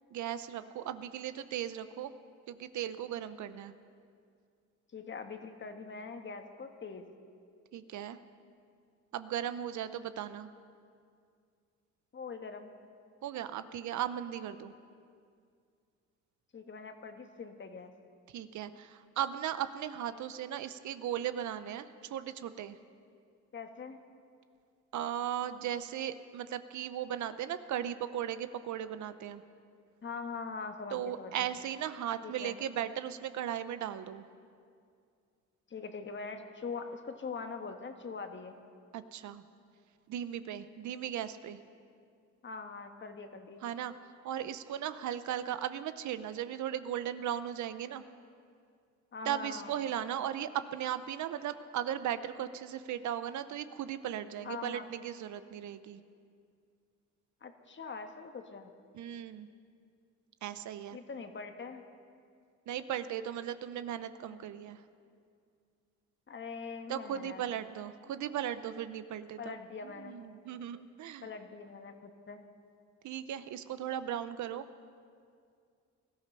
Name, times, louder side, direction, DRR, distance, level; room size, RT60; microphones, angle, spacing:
voice 1, 0.1-2.1 2.5-3.7 7.7-8.2 9.1-10.5 13.2-14.7 18.3-22.8 24.9-29.4 30.9-34.2 38.9-39.4 40.1-41.6 43.6-43.9 44.2-48.0 49.3-56.0 58.9-59.5 60.4-61.0 62.7-64.8 66.9-69.6 70.0-71.3 73.0-74.6, right 10 dB, 70° right, 12 dB, 0.8 m, -37 dB
voice 2, 4.9-7.1 12.1-12.7 16.5-17.9 23.5-24.0 30.0-31.5 32.2-32.6 35.7-38.6 42.4-43.7 49.1-49.7 54.4-54.9 57.4-58.7 60.9-61.8 66.3-67.4 69.4-70.2 71.2-72.4, left 5 dB, 40° left, 6 dB, 1.4 m, -43 dB
19.5 x 13.5 x 5.5 m, 2.3 s
cardioid pair, 90°, 30 cm